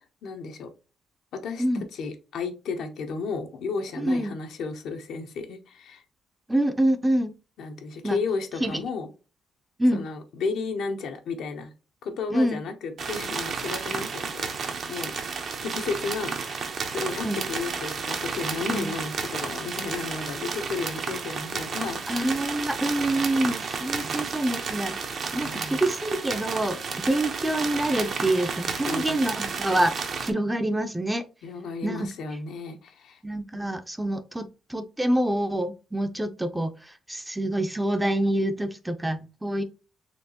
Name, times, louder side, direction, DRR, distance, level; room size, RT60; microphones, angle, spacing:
voice 1, 0.2-0.7 1.3-1.6 1.9-6.0 7.6-9.1 9.9-11.7 12.0-14.5 14.9-15.3 15.6-22.0 24.0-24.2 25.3-25.8 28.9-29.2 31.4-33.2 33.5-33.8, left 4 dB, 75° left, 0.9 m, -33 dB
voice 2, 4.0-4.4 6.5-7.3 8.0-8.2 8.6-8.8 9.8-10.0 12.3-12.6 17.2-17.4 18.7-18.9 22.1-24.9 25.3-31.2 31.8-32.1 33.2-39.6, right 1 dB, 10° right, 0.5 m, -26 dB
sound 1, 13.0-30.3, right 5 dB, 55° right, 0.8 m, -32 dB
4.4 x 3.0 x 2.8 m
cardioid pair, 90°, 0 cm